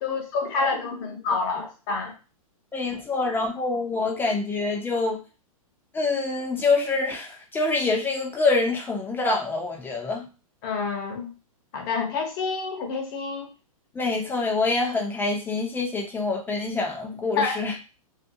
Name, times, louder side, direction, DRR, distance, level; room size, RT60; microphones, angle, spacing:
voice 1, 0.0-2.1 10.6-11.3 11.7-13.5 17.4-17.6, left 4 dB, 40° left, 2 dB, 0.8 m, -28 dB
voice 2, 2.7-5.2 5.9-10.3 13.9-17.7, left 3 dB, 10° left, 1 dB, 0.6 m, -26 dB
2.5 x 2.2 x 2.7 m, 0.32 s
hypercardioid pair, 125°, 19 cm